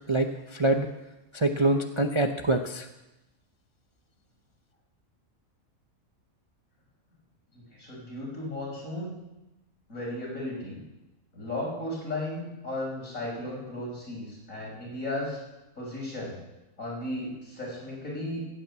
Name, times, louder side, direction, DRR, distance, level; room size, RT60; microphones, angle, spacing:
voice 1, 0.1-0.9 1.3-2.9, right 2 dB, 30° right, 5 dB, 0.6 m, -25 dB
voice 2, 7.5-9.2 9.9-10.8 11.3-15.4 15.8-16.4 16.8-18.4, left 1 dB, 70° left, -3 dB, 5.9 m, -35 dB
16.0 x 9.0 x 8.1 m, 1.0 s
omnidirectional pair, 1.5 m